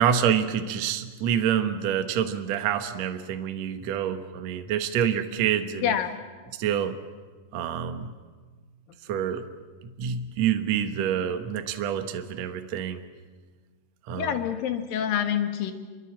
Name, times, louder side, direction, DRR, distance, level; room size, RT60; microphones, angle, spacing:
voice 1, 0.0-5.9 6.6-7.0 7.5-8.1 9.1-9.5 9.8-13.0 14.1-14.3, right 9 dB, 60° right, 7 dB, 2.1 m, -27 dB
voice 2, 5.8-6.1 14.1-15.7, left 9 dB, 80° left, 7 dB, 3.2 m, -26 dB
26.0 x 23.0 x 7.4 m, 1.4 s
omnidirectional pair, 4.0 m